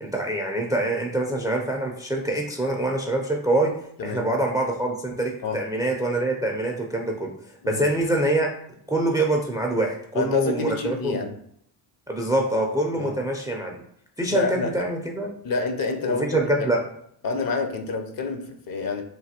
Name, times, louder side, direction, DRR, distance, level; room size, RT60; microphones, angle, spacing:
voice 1, 0.0-3.7 4.0-7.3 7.7-8.5 8.9-11.1 12.1-13.8 14.2-15.3 16.1-16.8, right 1 dB, 10° right, 0.4 m, -25 dB
voice 2, 10.1-11.4 13.0-13.1 14.3-14.8 15.4-16.7 17.2-19.0, left 4 dB, 50° left, 0.6 m, -28 dB
3.2 x 2.2 x 2.8 m
supercardioid pair, 70°, 46 cm